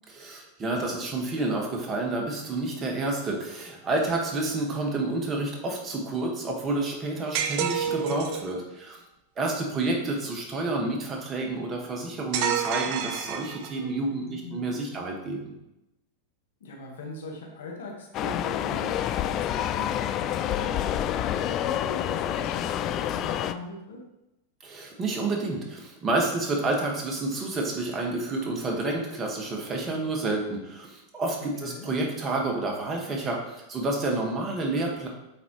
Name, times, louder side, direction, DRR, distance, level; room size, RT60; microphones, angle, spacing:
voice 1, 0.1-9.0 9.4-15.4 24.6-35.1, right 2 dB, 25° right, 0 dB, 1.6 m, -29 dB
sound 1, 7.3-8.5 12.3-13.9, right 7 dB, 55° right, 0.7 m, -29 dB
voice 2, 14.2-15.0 16.6-19.4 19.7-24.0 31.6-31.9, left 2 dB, 80° left, 0 dB, 1.5 m, -41 dB
sound 2, 18.1-23.5, left 11 dB, 40° left, 0.3 m, -28 dB
8.1 x 4.1 x 3.1 m, 0.92 s
hypercardioid pair, 115°, 0 cm